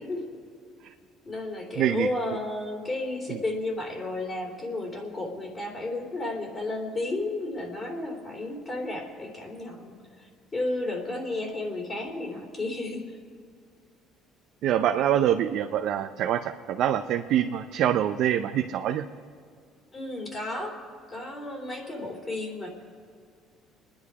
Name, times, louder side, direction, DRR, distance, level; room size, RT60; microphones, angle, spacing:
voice 1, 1.2-13.2 19.9-20.8 21.1-22.7, left 2 dB, 30° left, 0 dB, 3.4 m, -33 dB
voice 2, 1.8-2.1 14.6-19.0, right 10 dB, 65° right, 5 dB, 0.6 m, -25 dB
26.5 x 10.5 x 4.9 m, 2.2 s
cardioid pair, 110°, 0 cm